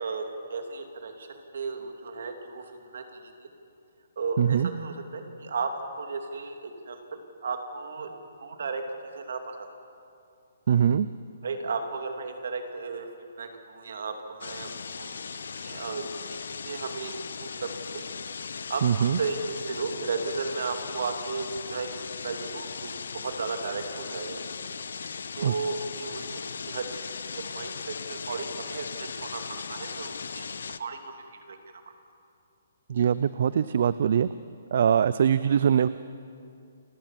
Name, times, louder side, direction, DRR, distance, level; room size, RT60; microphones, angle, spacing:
voice 1, 0.0-3.5 4.2-5.7 6.0-8.1 8.4-8.8 9.1-9.7 11.4-13.1 13.4-16.4 16.6-18.0 18.7-21.9 22.2-22.9 23.2-24.4 25.4-26.9 27.3-30.4 30.8-31.6, right 4 dB, 70° right, 5 dB, 2.6 m, -35 dB
voice 2, 4.4-4.7 10.7-11.1 18.8-19.2 25.4-25.5 32.9-34.3 34.7-35.9, right 8 dB, 50° right, 15 dB, 0.4 m, -22 dB
sound 1, 14.4-30.8, left 5 dB, 75° left, 0.8 m, -38 dB
29.0 x 12.0 x 7.5 m, 2.5 s
hypercardioid pair, 165°, 0 cm